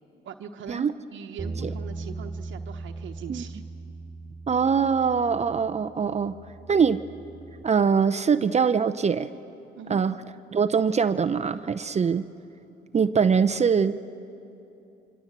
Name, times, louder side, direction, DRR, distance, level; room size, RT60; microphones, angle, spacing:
voice 1, 0.2-3.6 9.7-10.0, right 7 dB, 75° right, 4 dB, 1.1 m, -40 dB
sound 1, 1.4-7.6, right 3 dB, 15° right, 2.3 m, -39 dB
voice 2, 4.5-6.3 6.7-7.0 7.6-9.3 9.9-10.2 10.5-12.2 12.9-14.0, right 6 dB, 35° right, 10 dB, 0.7 m, -23 dB
26.5 x 24.0 x 7.5 m, 2.9 s
cardioid pair, 90°, 20 cm